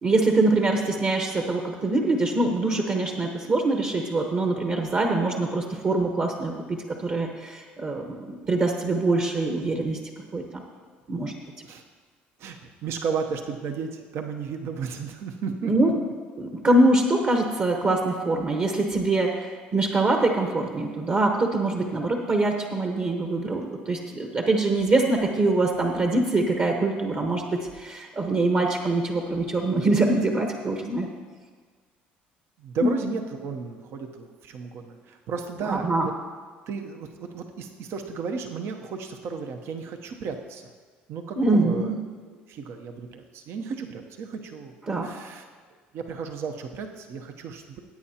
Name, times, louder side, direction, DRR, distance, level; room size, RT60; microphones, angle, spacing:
voice 1, 0.0-10.0 10.3-10.6 11.1-11.3 15.6-15.9 16.4-31.1 35.6-36.1 41.4-42.0 44.9-45.1, right 2 dB, 40° right, 3 dB, 1.2 m, -24 dB
voice 2, 12.4-15.9 32.6-36.1 36.7-40.7 41.1-42.0 42.3-44.7 45.0-45.4 45.9-47.8, right 5 dB, 60° right, 5 dB, 0.8 m, -34 dB
15.5 x 8.7 x 2.9 m, 1.5 s
hypercardioid pair, 65°, 5 cm